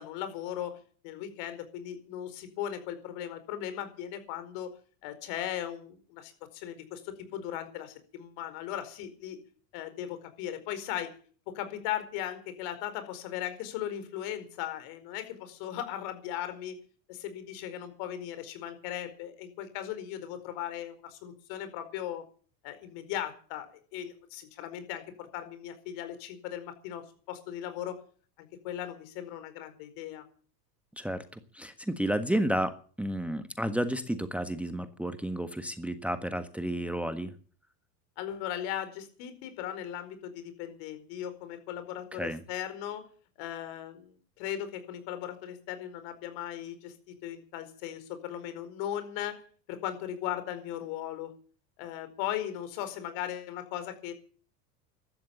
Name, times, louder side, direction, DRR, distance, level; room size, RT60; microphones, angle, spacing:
voice 1, 0.0-4.7 5.0-9.4 9.7-11.1 11.5-16.8 17.1-22.2 22.6-23.7 23.9-28.0 28.4-30.2 38.2-43.0 43.4-46.9 47.2-49.4 49.7-51.3 51.8-54.1, left 11 dB, 60° left, 10 dB, 4.8 m, -38 dB
voice 2, 31.5-37.3 42.1-42.4, right 1 dB, 5° right, 9 dB, 1.4 m, -31 dB
15.5 x 12.5 x 7.2 m, 0.42 s
hypercardioid pair, 100°, 48 cm